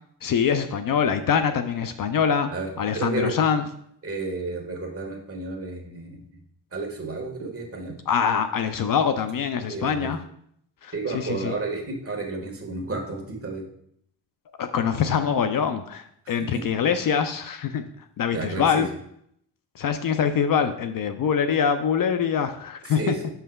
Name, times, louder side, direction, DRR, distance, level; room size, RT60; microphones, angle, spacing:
voice 1, 0.2-2.5 2.8-3.6 8.1-10.2 10.8-11.5 14.6-17.8 18.2-18.9 19.8-23.1, left 7 dB, 50° left, 9 dB, 0.5 m, -24 dB
voice 2, 2.5-3.3 4.0-6.4 6.7-8.0 9.7-10.1 10.9-13.7 16.2-16.6 18.3-18.9 22.8-23.3, right 3 dB, 30° right, 1 dB, 1.5 m, -32 dB
7.3 x 5.6 x 2.3 m, 0.70 s
cardioid pair, 85°, 44 cm